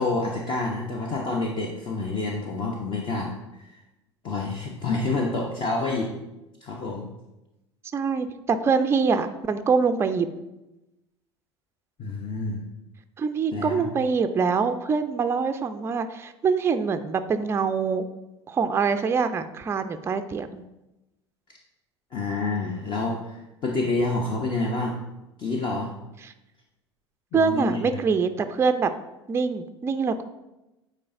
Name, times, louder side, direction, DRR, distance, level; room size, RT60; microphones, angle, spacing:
voice 1, 0.0-3.8 4.2-6.2 6.6-7.1 12.0-12.7 13.5-13.9 22.1-25.0 25.4-25.9 27.3-27.8, left 3 dB, 35° left, 0 dB, 0.8 m, -28 dB
voice 2, 7.9-10.3 13.2-18.1 18.5-20.6 26.2-26.3 27.3-28.9 29.3-30.2, right 5 dB, 15° right, 8 dB, 0.4 m, -24 dB
8.5 x 4.2 x 2.6 m, 0.97 s
figure-of-eight pair, 75°, 15 cm